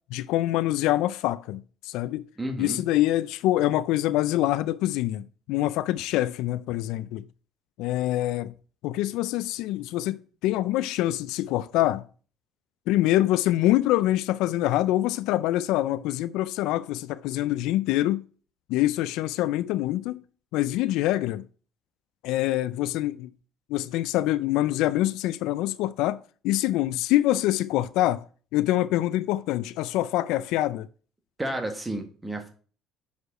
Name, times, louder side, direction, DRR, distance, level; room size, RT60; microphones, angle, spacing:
voice 1, 0.1-2.3 2.6-7.2 7.8-8.5 8.8-12.1 12.9-18.2 18.7-20.2 20.5-21.4 22.2-23.3 23.7-26.2 26.4-28.2 28.5-30.9, left 15 dB, 80° left, 0.3 m, -25 dB
voice 2, 2.4-2.8 31.4-32.5, right 1 dB, 10° right, 1.7 m, -31 dB
6.3 x 5.2 x 4.8 m
cardioid pair, 105°, 0 cm